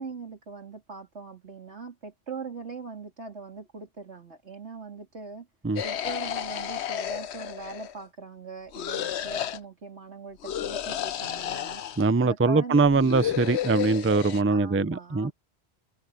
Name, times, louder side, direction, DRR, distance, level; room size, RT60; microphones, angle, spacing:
voice 1, 0.0-5.5 5.8-11.8 12.2-13.2 14.5-15.3, right 4 dB, 85° right, 3.8 m, -41 dB
sound 1, 5.8-8.0 8.7-9.6 10.4-12.1 12.9-14.4, left 10 dB, 75° left, 1.0 m, -32 dB
voice 2, 12.0-15.3, right 3 dB, 15° right, 0.5 m, -22 dB
omnidirectional pair, 1.1 m